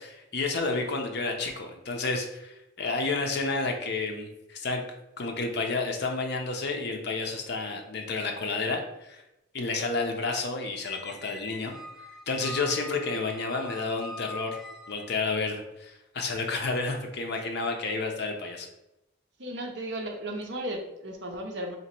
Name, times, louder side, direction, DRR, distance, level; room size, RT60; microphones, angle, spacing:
voice 1, 0.0-4.8 5.2-9.2 9.5-11.7 12.3-14.6 14.9-18.7, left 3 dB, 55° left, 2 dB, 0.6 m, -30 dB
Squeak, 10.8-15.3, left 1 dB, ahead, 0.5 m, -43 dB
voice 2, 19.4-21.8, right 1 dB, 60° right, 2 dB, 0.6 m, -35 dB
2.9 x 2.9 x 4.3 m, 0.90 s
head